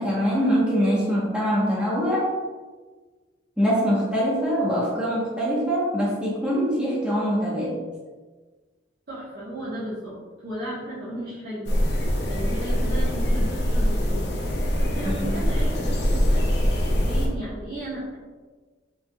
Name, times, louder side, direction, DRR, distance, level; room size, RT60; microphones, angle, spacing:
voice 1, 0.0-2.3 3.6-7.8 15.0-15.4, equal, 5° right, -6 dB, 1.1 m, -23 dB
voice 2, 9.1-10.1 10.4-11.8 12.2-14.3 14.8-16.5 17.0-18.1, right 1 dB, 65° right, -12 dB, 1.3 m, -35 dB
sound 1, 11.7-17.3, equal, 65° left, 0.8 m, -23 dB
5.4 x 3.7 x 2.3 m, 1.4 s
head